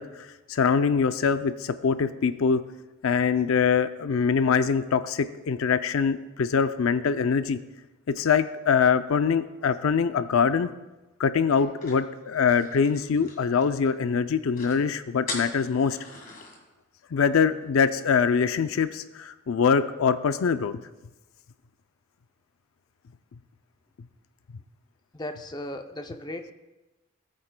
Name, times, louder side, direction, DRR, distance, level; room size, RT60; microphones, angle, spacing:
voice 1, 0.0-2.6 3.0-7.6 8.1-10.7 11.2-16.0 17.1-20.8, left 6 dB, 80° left, 12 dB, 0.4 m, -23 dB
sound 1, 11.5-13.9 14.2-14.3 14.5-14.8 15.3-16.6, left 3 dB, 40° left, 1.9 m, -40 dB
voice 2, 25.1-26.5, left 1 dB, 20° left, 6 dB, 0.5 m, -36 dB
18.0 x 8.8 x 2.2 m, 1.1 s
head